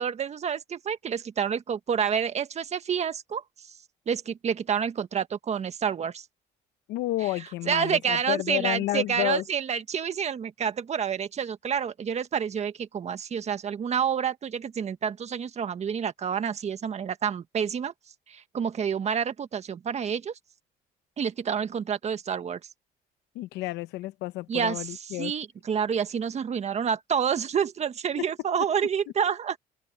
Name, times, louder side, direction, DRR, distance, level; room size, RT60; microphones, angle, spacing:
voice 1, 0.0-3.4 4.1-6.2 7.7-17.9 18.3-20.3 21.2-22.6 24.5-29.6, right 7 dB, 40° right, 1.5 m, -28 dB
voice 2, 6.9-9.4 23.3-25.3 28.2-28.3, left 17 dB, 90° left, 1.1 m, -30 dB
cardioid pair, 110°, 17 cm